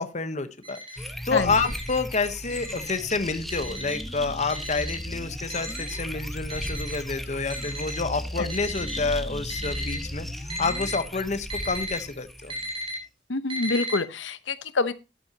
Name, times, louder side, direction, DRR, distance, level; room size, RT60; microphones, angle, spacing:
voice 1, 0.0-12.5, left 4 dB, 40° left, 10 dB, 1.0 m, -29 dB
Alarm, 0.6-0.9 1.5-1.9 2.5-2.9 3.5-4.0 4.5-5.0 5.5-6.0 6.5-7.0 7.5-8.0 8.5-9.0 9.5-10.0 10.5-10.9 11.5-11.9 12.5-12.9 13.5-14.0, equal, 25° right, 4.3 m, -35 dB
sound 1, 1.0-12.9, equal, ahead, 1.1 m, -36 dB
voice 2, 13.3-14.9, left 3 dB, 85° left, 13 dB, 1.0 m, -27 dB
12.5 x 11.0 x 2.9 m, 0.26 s
head